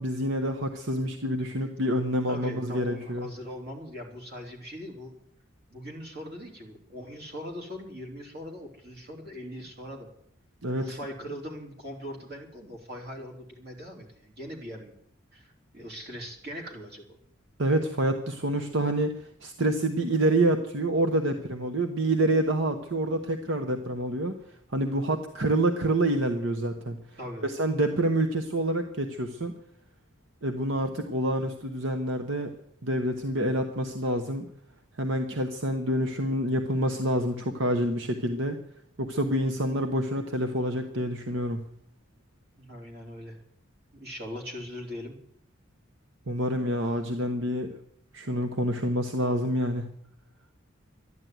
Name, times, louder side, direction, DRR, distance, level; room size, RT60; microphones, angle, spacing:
voice 1, 0.0-3.3 10.6-11.0 17.6-19.1 19.4-24.4 24.7-27.0 27.4-29.5 30.4-32.5 32.8-34.5 35.0-38.6 39.0-41.6 46.3-47.7 48.1-49.9, right 1 dB, 75° right, 6 dB, 1.1 m, -27 dB
voice 2, 2.3-5.1 5.7-10.1 10.8-14.9 15.3-17.0 21.3-21.4 27.2-27.4 42.6-43.4 43.9-45.2, equal, 50° right, 1 dB, 3.6 m, -40 dB
12.5 x 11.0 x 9.2 m, 0.69 s
head